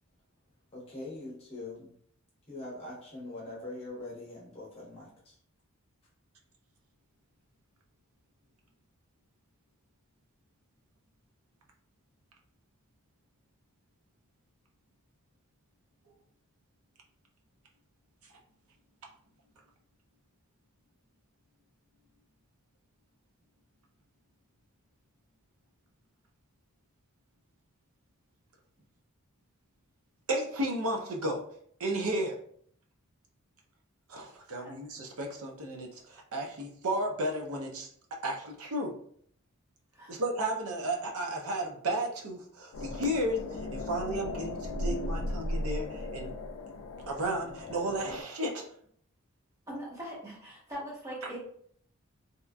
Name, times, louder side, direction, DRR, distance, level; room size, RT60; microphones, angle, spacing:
voice 1, 0.7-2.0 2.5-5.3, left 2 dB, 25° left, -6 dB, 0.9 m, -43 dB
voice 2, 30.3-31.4 31.8-32.4 34.1-37.9 38.2-38.9 40.1-46.3 47.1-48.6, right 1 dB, 85° right, 1 dB, 0.6 m, -33 dB
sound 1, 42.7-48.2, left 1 dB, 85° left, 0.3 m, -36 dB
voice 3, 49.7-51.4, equal, 15° right, -6 dB, 1.0 m, -41 dB
2.8 x 2.4 x 2.2 m, 0.63 s
head